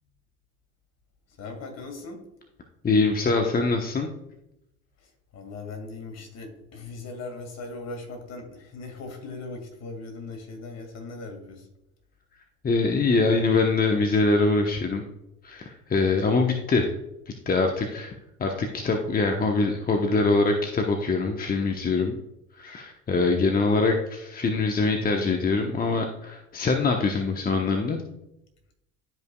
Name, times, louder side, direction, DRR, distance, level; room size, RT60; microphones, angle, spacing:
voice 1, 1.4-2.2 5.0-11.7, left 3 dB, 50° left, 4 dB, 2.1 m, -39 dB
voice 2, 2.8-4.1 12.6-15.0 15.4-16.9 17.5-18.1 18.4-22.1 22.6-28.0, left 3 dB, 25° left, 3 dB, 0.9 m, -23 dB
12.0 x 5.3 x 2.3 m, 0.87 s
hypercardioid pair, 70°, 32 cm